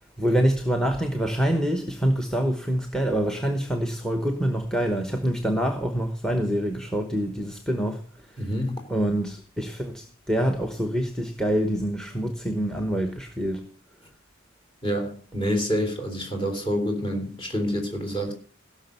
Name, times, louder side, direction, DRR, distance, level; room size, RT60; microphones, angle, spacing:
voice 1, 0.2-8.5 8.9-13.7, right 1 dB, 5° left, 1.0 m, -26 dB
voice 2, 8.4-8.8 14.8-18.3, equal, 30° left, 3.7 m, -27 dB
16.5 x 6.2 x 6.7 m
head